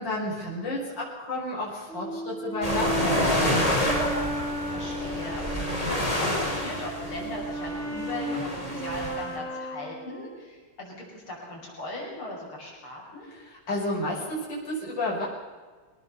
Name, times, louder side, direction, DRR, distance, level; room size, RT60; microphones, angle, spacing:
voice 1, 0.0-4.1 13.3-15.3, left 1 dB, 55° left, -6 dB, 6.5 m, -32 dB
Brass instrument, 1.9-5.9 6.4-10.5, right 1 dB, 30° right, 3.1 m, -34 dB
sound 1, 2.6-9.2, left 1 dB, 15° left, 4.6 m, -28 dB
voice 2, 4.7-13.3, left 2 dB, 70° left, -3 dB, 7.0 m, -39 dB
24.0 x 18.5 x 7.0 m, 1.4 s
omnidirectional pair, 2.4 m